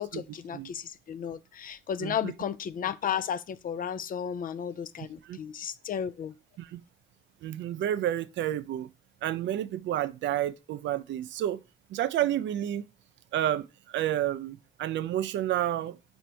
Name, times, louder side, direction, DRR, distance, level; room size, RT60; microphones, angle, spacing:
voice 1, 0.0-6.3, left 8 dB, 45° left, 0.4 m, -34 dB
voice 2, 2.0-2.3 5.2-5.4 6.6-6.8 7.4-8.9 9.2-11.6 11.9-12.8 13.3-16.0, right 12 dB, 65° right, 0.4 m, -30 dB
4.5 x 2.6 x 4.3 m
cardioid pair, 90°, 20 cm